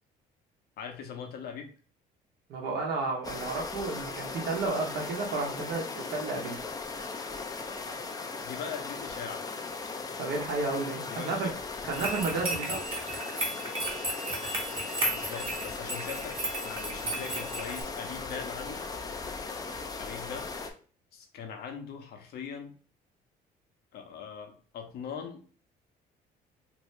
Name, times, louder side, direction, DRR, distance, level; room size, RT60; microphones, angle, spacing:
voice 1, 0.8-1.7 8.4-9.4 11.1-11.5 15.0-18.9 20.0-20.5 21.1-22.7 23.9-25.4, left 7 dB, 70° left, 4 dB, 0.8 m, -41 dB
voice 2, 2.5-6.6 10.2-11.5 11.8-12.9, right 3 dB, 75° right, -1 dB, 0.9 m, -32 dB
sound 1, 3.2-20.7, left 4 dB, 20° left, 0.5 m, -38 dB
sound 2, 11.9-17.8, right 2 dB, 35° right, 1.0 m, -34 dB
2.8 x 2.7 x 3.2 m, 0.41 s
cardioid pair, 110°, 17 cm